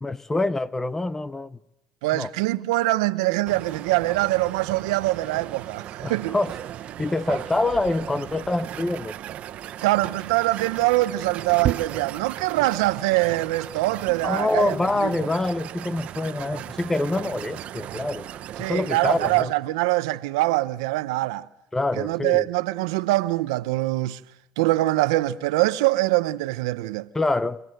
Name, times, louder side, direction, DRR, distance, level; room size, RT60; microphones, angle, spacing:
voice 1, 0.0-1.6 2.1-2.3 6.0-6.5 7.0-9.2 14.2-18.3 18.7-19.5 21.7-22.5 27.1-27.6, left 2 dB, 15° left, 0.9 m, -25 dB
voice 2, 2.0-6.4 9.8-14.7 15.0-15.1 18.6-21.5 22.0-24.2 24.6-27.1, right 18 dB, 85° right, 0.8 m, -23 dB
sound 1, 3.5-19.4, right 12 dB, 55° right, 0.9 m, -36 dB
28.0 x 18.0 x 7.8 m
supercardioid pair, 85°, 3 cm